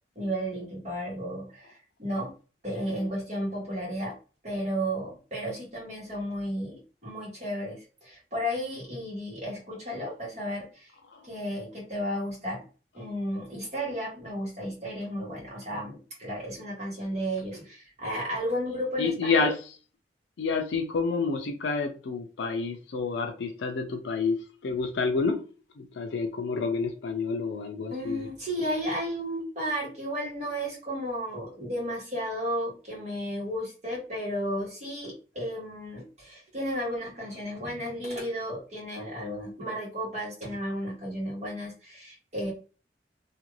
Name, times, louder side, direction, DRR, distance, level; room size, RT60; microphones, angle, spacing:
voice 1, 0.1-2.3 2.6-4.1 4.4-10.9 11.2-12.6 12.9-19.5 27.9-42.5, equal, 40° right, 1.5 m, -33 dB
voice 2, 19.0-19.5 20.4-25.4 25.8-28.3, left 4 dB, 85° left, 0.4 m, -29 dB
2.8 x 2.5 x 3.1 m
head